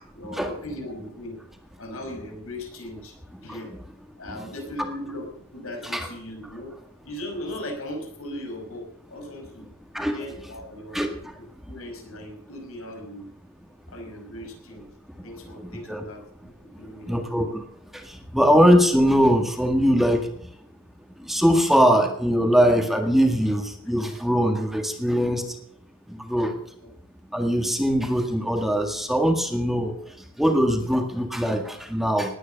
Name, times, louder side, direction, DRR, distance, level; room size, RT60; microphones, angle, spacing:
voice 1, 0.1-1.4 1.8-3.1 3.4-3.8 4.2-6.7 7.0-9.7 10.0-11.1 11.7-13.3 13.9-14.9 15.2-17.2 26.8-26.9, left 1 dB, 85° left, 3 dB, 5.4 m, -38 dB
voice 2, 10.9-11.3 15.6-16.0 17.0-17.6 17.9-20.5 21.2-25.6 26.1-26.6 27.3-32.4, equal, ahead, 4 dB, 1.8 m, -22 dB
19.0 x 9.8 x 6.7 m, 0.69 s
head